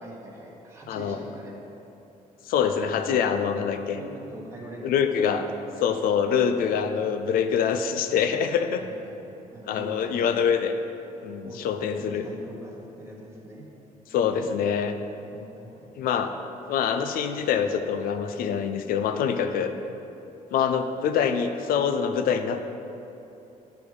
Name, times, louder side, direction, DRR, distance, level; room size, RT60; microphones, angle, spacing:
voice 1, 0.0-1.5 3.9-5.8 8.8-10.3 11.4-11.6 12.0-13.7 15.3-15.9, right 1 dB, 20° right, -3 dB, 1.3 m, -43 dB
voice 2, 0.9-1.2 2.5-4.0 4.8-5.4 5.8-8.8 9.7-10.7 11.2-12.2 14.1-15.0 16.0-16.3 16.7-19.7 20.5-22.6, left 7 dB, 80° left, 8 dB, 0.5 m, -25 dB
10.5 x 3.5 x 4.7 m, 2.9 s
cardioid pair, 140°, 15 cm